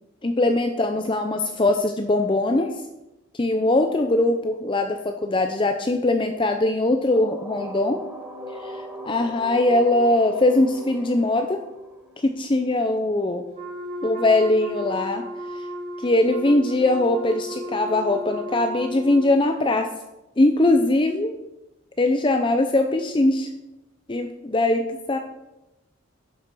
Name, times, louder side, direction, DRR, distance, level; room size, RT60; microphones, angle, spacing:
voice 1, 0.2-2.7 3.3-8.0 8.6-11.6 12.2-13.4 14.0-15.3 15.5-15.7 16.0-19.9 20.4-21.4 22.0-23.5 24.1-25.2, left 2 dB, 25° left, 6 dB, 0.6 m, -21 dB
sound 1, 7.1-12.8, equal, 5° right, 1.3 m, -39 dB
Wind instrument woodwind instrument, 13.5-19.3, equal, 35° right, 2.8 m, -34 dB
11.0 x 7.1 x 6.1 m, 0.97 s
head